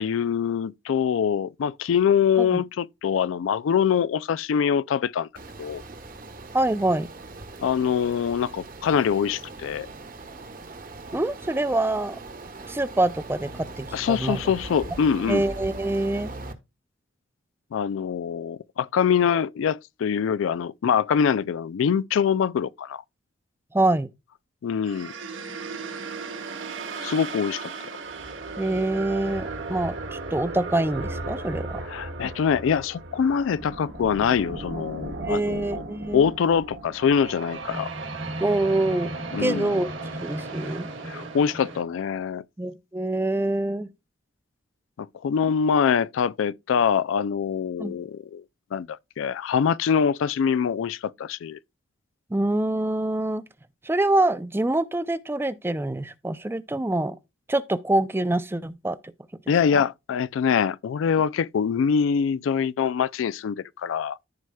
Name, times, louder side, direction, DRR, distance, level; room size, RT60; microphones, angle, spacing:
voice 1, 0.0-5.3 5.6-5.8 7.6-9.9 13.9-15.4 17.7-23.0 24.6-25.1 27.0-27.7 31.9-35.8 36.1-37.9 39.3-39.8 41.0-42.4 45.0-48.4 48.7-51.6 59.5-64.2, left 7 dB, 80° left, 0.3 m, -24 dB
sound 1, 5.3-16.5, right 2 dB, 45° right, 1.2 m, -40 dB
voice 2, 6.5-7.1 11.1-12.2 12.7-13.5 13.8-14.4 15.3-16.3 23.7-24.1 28.6-31.8 35.3-36.2 38.4-39.1 39.4-39.9 40.2-40.9 42.6-43.9 47.8-48.0 52.3-53.4 53.8-57.2 57.5-59.0, right 2 dB, 10° right, 0.4 m, -25 dB
sound 2, 24.8-41.8, right 3 dB, 75° right, 1.7 m, -35 dB
14.0 x 4.7 x 2.2 m
head